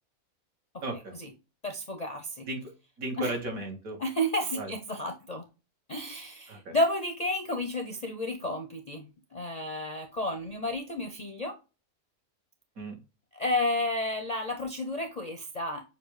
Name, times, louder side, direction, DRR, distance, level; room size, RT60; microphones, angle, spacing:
voice 1, 0.8-1.2 2.5-2.7 3.0-4.0 4.6-4.7 6.5-6.8 12.8-13.0, right 2 dB, 75° right, 2 dB, 1.9 m, -35 dB
voice 2, 1.6-2.5 3.2-3.3 4.0-5.4 5.9-11.5 13.3-15.8, left 1 dB, 45° left, 5 dB, 0.5 m, -31 dB
6.7 x 2.4 x 3.1 m, 0.29 s
omnidirectional pair, 1.5 m